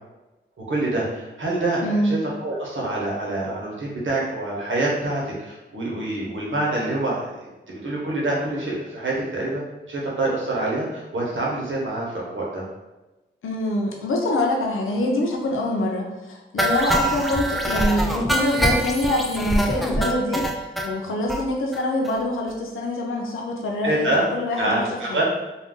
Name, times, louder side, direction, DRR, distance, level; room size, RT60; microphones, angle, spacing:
voice 1, 0.7-7.3 7.7-12.6 23.8-24.2 24.5-25.2, right 2 dB, 75° right, -4 dB, 1.0 m, -26 dB
voice 2, 13.4-25.2, left 1 dB, 90° left, 0 dB, 0.5 m, -25 dB
sound 1, 16.6-20.9 21.3-21.4 21.7-21.8 22.0-22.2 22.5-22.6, right 1 dB, ahead, 0.4 m, -24 dB
2.5 x 2.2 x 3.6 m, 1.1 s
cardioid pair, 45°, 20 cm